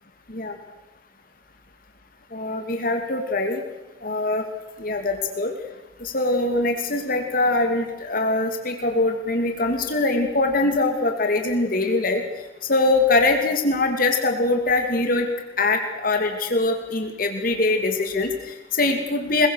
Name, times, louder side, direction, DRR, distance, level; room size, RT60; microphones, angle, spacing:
voice 1, 2.3-3.6 4.0-4.4 4.8-5.5 6.0-12.2 12.7-15.3 15.6-19.5, left 2 dB, 55° left, 4 dB, 2.7 m, -22 dB
22.0 x 21.5 x 6.5 m, 1.0 s
head